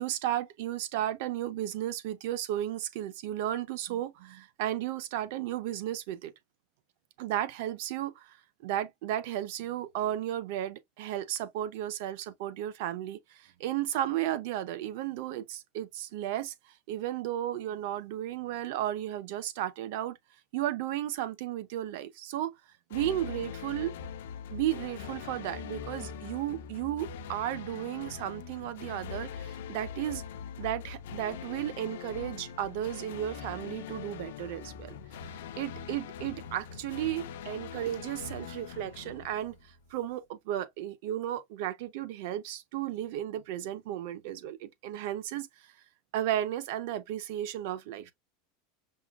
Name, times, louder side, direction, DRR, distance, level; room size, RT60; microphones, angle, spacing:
voice 1, 0.0-6.3 7.2-8.4 8.6-16.5 16.9-20.2 20.5-22.5 22.9-24.0 24.5-30.2 30.6-35.0 35.6-39.6 39.9-45.5 46.1-48.1, right 12 dB, 65° right, 0.7 m, -34 dB
sound 1, 22.9-40.0, left 7 dB, 85° left, 0.6 m, -42 dB
5.5 x 2.3 x 2.3 m
supercardioid pair, 150°, 0 cm